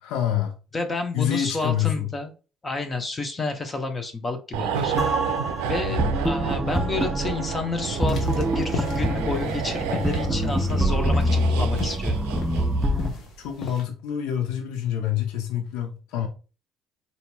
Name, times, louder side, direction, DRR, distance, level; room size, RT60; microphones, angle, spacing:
voice 1, 0.0-0.5 1.1-2.1 5.9-6.1 13.4-16.3, left 10 dB, 80° left, 0.6 m, -27 dB
voice 2, 0.7-2.3 2.6-5.0 5.7-12.2, left 3 dB, 30° left, 0.7 m, -30 dB
sound 1, 4.5-13.1 13.3-13.5, right 7 dB, 90° right, 0.4 m, -30 dB
sound 2, 5.0-13.1, equal, 10° right, 0.5 m, -26 dB
sound 3, 8.0-13.8, left 4 dB, 60° left, 1.0 m, -34 dB
4.1 x 2.8 x 2.3 m
supercardioid pair, 85°, 0 cm